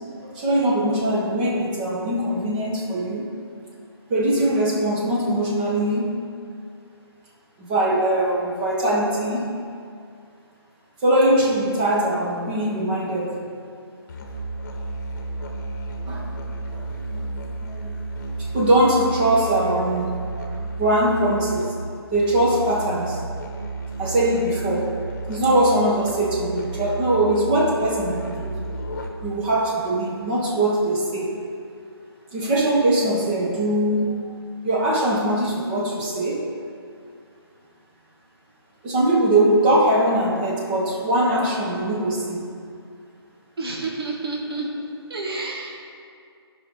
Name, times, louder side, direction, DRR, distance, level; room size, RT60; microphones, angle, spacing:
voice 1, 0.2-3.3 4.1-6.2 7.6-9.5 11.0-13.4 16.1-16.3 16.7-17.3 17.6-18.0 18.4-20.1 20.8-21.7 22.1-23.3 24.0-24.9 25.3-28.6 29.2-31.3 32.3-34.3 34.6-36.4 38.8-42.4, right 1 dB, 25° right, -3 dB, 1.4 m, -21 dB
Musical instrument, 14.1-29.4, right 2 dB, 40° left, 1.1 m, -32 dB
voice 2, 43.6-44.7 45.1-45.7, right 3 dB, 65° right, -2 dB, 1.7 m, -29 dB
14.5 x 5.4 x 4.0 m, 2.3 s
figure-of-eight pair, 155°, 13 cm